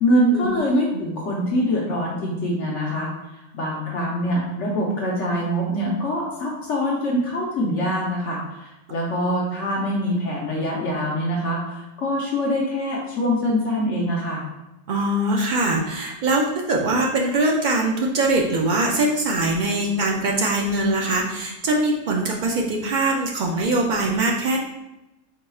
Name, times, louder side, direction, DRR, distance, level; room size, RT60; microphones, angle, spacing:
voice 1, 0.0-3.1 3.5-14.4, equal, 65° left, -3 dB, 1.0 m, -24 dB
voice 2, 14.9-24.6, right 2 dB, 85° right, -1 dB, 0.4 m, -22 dB
4.8 x 4.1 x 2.3 m, 0.99 s
omnidirectional pair, 1.4 m